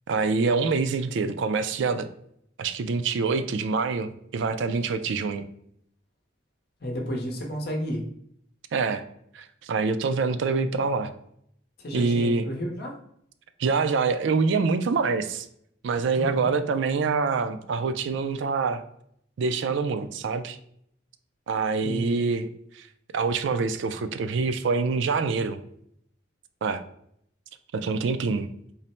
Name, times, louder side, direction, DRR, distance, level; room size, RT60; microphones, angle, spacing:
voice 1, 0.1-2.1 2.6-5.5 8.7-9.0 9.3-11.1 11.9-12.4 13.6-15.5 15.8-18.8 19.4-20.6 21.5-22.5 22.7-22.9 23.1-25.6 26.6-26.8 27.7-28.5, right 4 dB, 65° right, 10 dB, 0.3 m, -25 dB
voice 2, 6.8-8.1 11.8-13.0 16.1-16.5 21.8-22.3, equal, 55° left, 1 dB, 0.8 m, -32 dB
3.9 x 2.1 x 4.2 m, 0.70 s
head